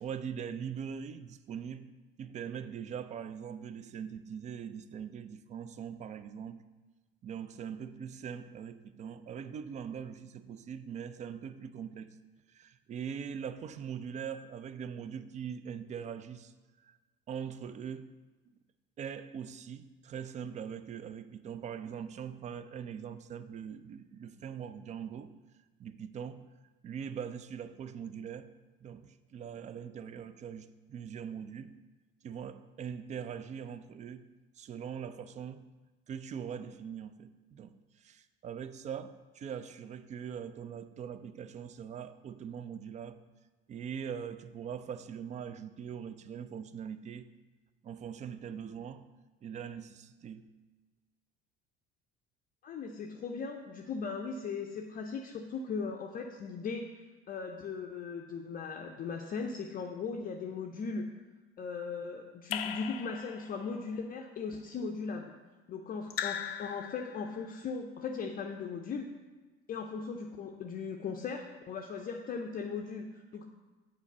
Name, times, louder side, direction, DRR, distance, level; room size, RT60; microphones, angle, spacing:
voice 1, 0.0-1.9 2.2-6.6 7.2-12.2 12.5-16.5 16.8-17.0 17.3-18.1 19.0-25.3 25.8-26.5 26.8-28.5 28.8-31.8 32.2-34.3 34.6-35.6 36.1-43.2 43.7-47.3 47.8-49.1 49.4-50.5, right 7 dB, 25° right, 0.4 m, -42 dB
voice 2, 52.6-61.0 61.6-65.2 65.7-69.1 69.7-73.4, left 5 dB, 30° left, 0.6 m, -38 dB
Raindrop / Drip, 62.5-63.7 66.1-67.5, left 9 dB, 75° left, 0.5 m, -38 dB
8.2 x 4.4 x 5.2 m
figure-of-eight pair, 60°, 30 cm